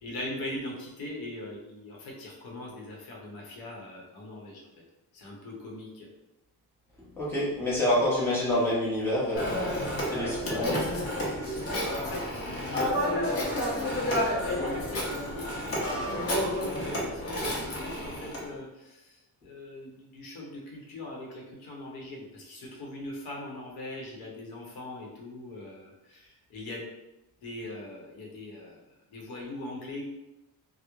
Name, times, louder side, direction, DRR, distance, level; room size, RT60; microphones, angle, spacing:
voice 1, 0.0-4.6 5.1-6.1 10.7-11.0 11.6-26.9 27.4-30.0, left 1 dB, 85° left, -2 dB, 0.8 m, -41 dB
voice 2, 7.2-9.6 10.1-10.8, left 1 dB, 5° left, -9 dB, 0.7 m, -27 dB
Telephone, 9.3-18.4, left 1 dB, 40° left, 0.6 m, -30 dB
2.9 x 2.0 x 2.3 m, 0.95 s
cardioid pair, 165°, 36 cm